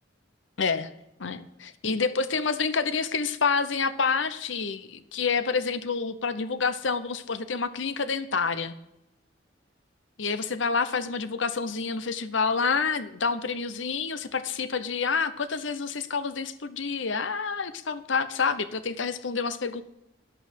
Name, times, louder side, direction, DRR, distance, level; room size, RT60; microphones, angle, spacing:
voice 1, 0.6-0.9 1.2-8.7 10.2-19.8, left 5 dB, 70° left, 12 dB, 0.8 m, -28 dB
11.5 x 7.8 x 6.5 m, 0.87 s
head